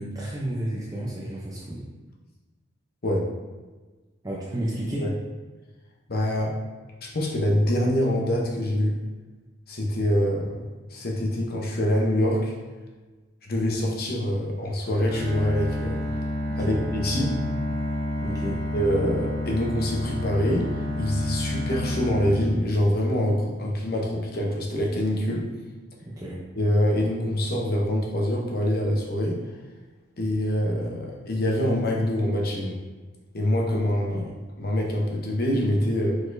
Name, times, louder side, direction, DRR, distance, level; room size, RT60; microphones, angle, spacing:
voice 1, 0.0-1.9 4.2-5.1 16.5-16.8 18.2-18.6 26.0-26.4 34.1-34.3, right 1 dB, 20° right, -5 dB, 0.5 m, -32 dB
voice 2, 6.1-6.6 7.1-9.0 9.7-12.5 13.4-16.0 16.6-17.3 18.7-20.7 21.0-25.4 26.6-29.4 30.2-32.8 33.3-34.3 34.6-36.2, left 1 dB, 50° left, -1 dB, 0.8 m, -25 dB
Bowed string instrument, 14.8-23.1, left 1 dB, 10° left, 1.3 m, -30 dB
4.7 x 4.1 x 2.6 m, 1.3 s
head